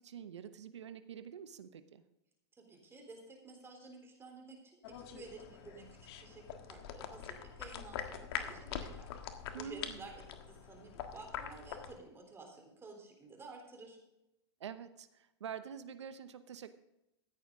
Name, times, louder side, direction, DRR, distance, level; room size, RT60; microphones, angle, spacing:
voice 1, 0.0-2.0 9.5-10.1 14.6-16.7, right 8 dB, 90° right, 11 dB, 0.9 m, -47 dB
voice 2, 2.5-14.0, right 3 dB, 15° right, 2 dB, 3.7 m, -52 dB
sound 1, 4.8-11.9, left 9 dB, 65° left, 1.6 m, -44 dB
14.5 x 9.6 x 3.8 m, 0.89 s
hypercardioid pair, 120°, 14 cm